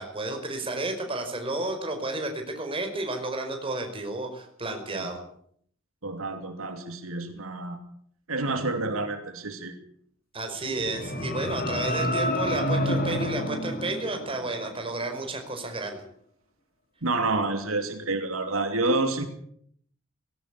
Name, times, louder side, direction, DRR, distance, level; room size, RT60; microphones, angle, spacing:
voice 1, 0.0-5.2 10.3-16.0, right 2 dB, 25° right, 4 dB, 5.2 m, -32 dB
voice 2, 6.0-7.8 8.3-9.7 17.0-19.2, right 2 dB, 85° right, 6 dB, 2.9 m, -28 dB
sound 1, 10.5-14.8, left 1 dB, 45° left, 3.1 m, -29 dB
19.5 x 17.5 x 8.4 m, 0.65 s
head